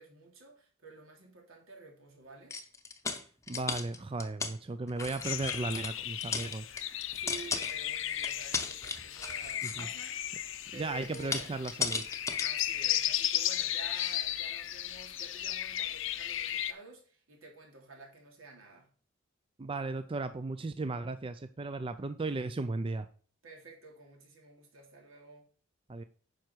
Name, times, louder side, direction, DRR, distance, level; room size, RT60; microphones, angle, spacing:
voice 1, 0.0-2.6 7.1-10.4 10.7-11.6 12.4-18.9 23.4-25.5, right 3 dB, 85° right, 3.1 m, -51 dB
saving the pennies, 2.5-4.5 4.9-5.9 6.2-7.9 8.2-10.1 11.0-12.5 12.9-13.0, left 4 dB, 15° left, 0.8 m, -36 dB
voice 2, 3.5-6.7 9.6-9.9 10.7-12.0 19.6-23.1 25.9-26.0, right 3 dB, 25° right, 0.4 m, -36 dB
sound 1, 5.2-16.7, left 12 dB, 65° left, 0.6 m, -35 dB
9.6 x 5.9 x 4.6 m
head